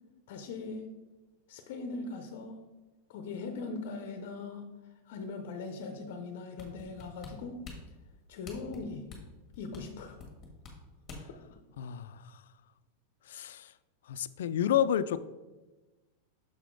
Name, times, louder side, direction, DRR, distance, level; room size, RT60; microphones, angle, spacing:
voice 1, 0.3-0.8 1.5-2.6 3.1-4.7 5.1-7.6 8.3-9.1 9.6-10.2, left 4 dB, 50° left, 5 dB, 0.7 m, -40 dB
sound 1, 6.6-11.4 11.9-12.0, left 4 dB, 20° left, 1.4 m, -47 dB
voice 2, 11.8-12.2 13.3-13.7 14.1-15.2, left 10 dB, 80° left, 14 dB, 0.3 m, -30 dB
6.7 x 4.1 x 4.6 m, 1.1 s
supercardioid pair, 170°, 0 cm